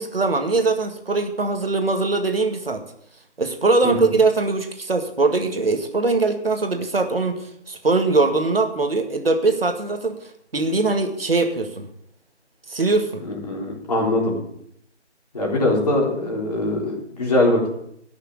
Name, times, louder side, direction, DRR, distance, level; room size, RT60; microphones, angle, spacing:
voice 1, 0.0-2.8 3.4-10.2 10.5-11.9 12.7-13.2, right 3 dB, 55° right, 6 dB, 2.0 m, -21 dB
voice 2, 13.2-14.4 15.3-17.7, left 1 dB, 35° left, -3 dB, 3.9 m, -22 dB
14.5 x 6.7 x 8.7 m, 0.71 s
figure-of-eight pair, 165°, 35 cm